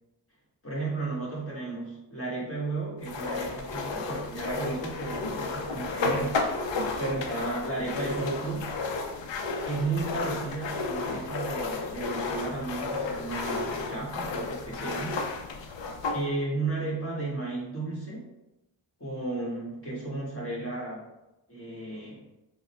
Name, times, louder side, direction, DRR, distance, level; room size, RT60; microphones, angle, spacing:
voice 1, 0.6-6.4 7.0-8.8 9.6-15.5 16.1-18.3 19.0-21.1 21.5-22.3, right 2 dB, 30° left, -6 dB, 1.4 m, -34 dB
sound 1, 3.0-16.2, left 3 dB, 70° left, 0.6 m, -32 dB
3.6 x 2.1 x 4.2 m, 0.96 s
cardioid pair, 55°, 46 cm